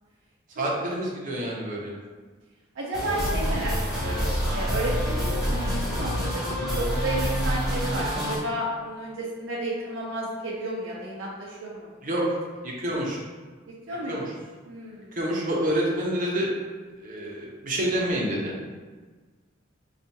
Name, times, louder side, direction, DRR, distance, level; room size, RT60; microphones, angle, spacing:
voice 1, 0.6-1.9 12.0-12.4 12.6-13.2 14.1-14.2 15.1-16.5 17.0-18.5, right 1 dB, 45° right, -3 dB, 0.7 m, -27 dB
voice 2, 2.8-12.0 13.9-14.3 14.7-15.2, right 1 dB, 85° right, -5 dB, 0.6 m, -32 dB
sound 1, 2.9-8.4, equal, ahead, 1.0 m, -27 dB
4.5 x 2.4 x 2.8 m, 1.4 s
head